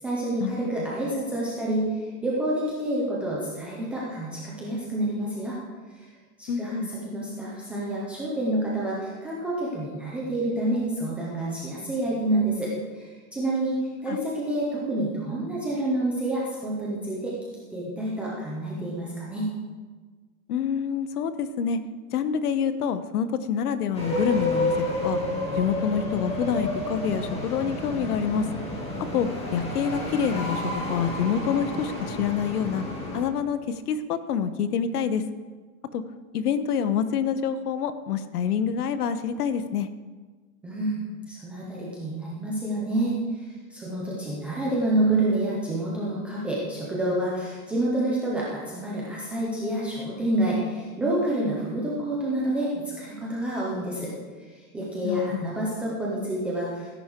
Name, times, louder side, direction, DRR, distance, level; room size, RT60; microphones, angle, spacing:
voice 1, 0.0-5.6 6.0-6.1 6.4-6.7 7.0-17.4 17.7-19.5 40.6-43.2 43.7-54.1 54.4-57.0, right 1 dB, 5° right, -6 dB, 0.3 m, -28 dB
voice 2, 6.5-6.9 14.1-14.2 20.5-21.8 22.1-24.7 25.0-25.2 25.6-28.5 29.1-32.8 33.1-35.2 35.9-36.0 36.3-39.9 55.0-55.5, left 7 dB, 80° left, 12 dB, 1.2 m, -27 dB
sound 1, 23.9-33.2, left 1 dB, 15° left, 2.4 m, -30 dB
17.5 x 10.5 x 3.7 m, 1.4 s
supercardioid pair, 150°, 45 cm